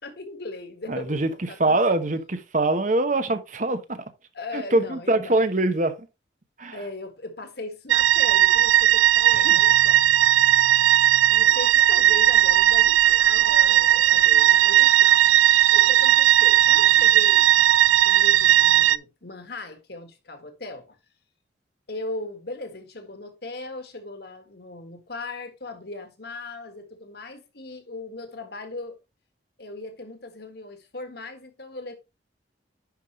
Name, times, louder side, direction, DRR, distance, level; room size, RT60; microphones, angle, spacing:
voice 1, 0.0-2.0 4.3-5.3 6.7-10.0 11.3-15.1 15.7-17.5 18.0-21.0 21.9-29.0 29.6-31.9, left 2 dB, 55° left, 1.7 m, -38 dB
voice 2, 0.9-1.3 1.6-4.0 4.5-5.9 6.6-6.7 9.3-9.6, right 2 dB, 40° right, 1.0 m, -23 dB
sound 1, 7.9-19.0, right 13 dB, 85° right, 0.4 m, -17 dB
sound 2, 9.6-18.2, right 1 dB, 70° right, 4.5 m, -48 dB
10.5 x 5.4 x 3.1 m
head